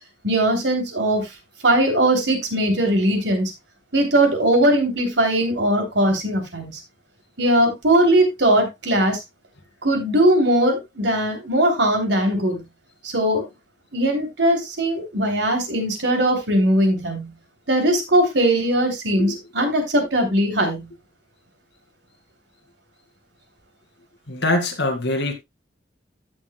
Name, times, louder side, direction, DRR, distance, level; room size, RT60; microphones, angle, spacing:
voice 1, 0.2-1.3 1.6-3.5 3.9-6.8 7.4-9.2 9.8-12.6 13.0-13.5 13.9-17.3 17.7-20.9, right 1 dB, 70° right, 3.1 m, -20 dB
voice 2, 24.3-25.3, left 2 dB, 70° left, 2.2 m, -23 dB
15.0 x 6.3 x 2.2 m
head